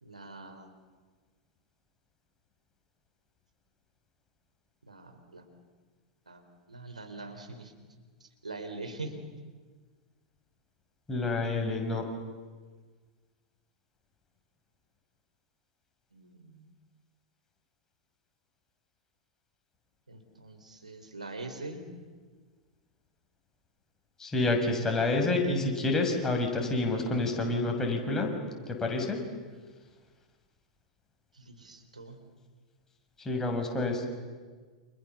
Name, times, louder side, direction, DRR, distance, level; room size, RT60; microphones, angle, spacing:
voice 1, 0.0-0.7 4.9-5.5 6.3-6.4 6.7-7.7 8.2-9.1 16.1-16.7 20.1-21.9 31.3-32.2, right 2 dB, 85° right, 6 dB, 4.0 m, -43 dB
voice 2, 11.1-12.1 24.2-28.3 28.7-29.2 33.2-34.1, left 2 dB, 15° left, 2 dB, 6.4 m, -28 dB
29.5 x 28.0 x 7.1 m, 1.5 s
figure-of-eight pair, 95°, 4 cm